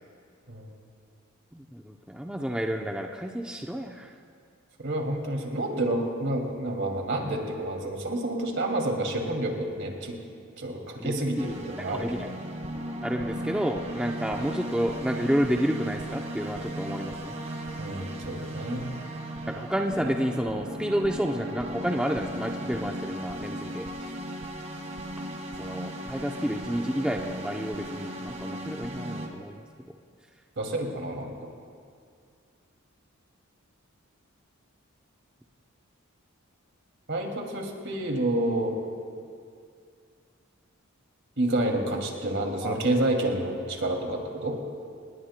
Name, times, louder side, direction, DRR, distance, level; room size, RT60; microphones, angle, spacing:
voice 1, 1.5-4.1 11.0-12.3 13.0-17.4 19.5-24.1 25.6-29.7 42.6-42.7, equal, 5° right, 1 dB, 0.6 m, -30 dB
voice 2, 4.8-10.2 10.6-12.3 17.8-18.9 30.6-31.5 37.1-38.8 41.4-44.6, right 1 dB, 60° right, 1 dB, 2.4 m, -29 dB
sound 1, 11.4-29.3, right 1 dB, 30° right, 1.8 m, -37 dB
27.5 x 20.0 x 2.2 m, 2.3 s
head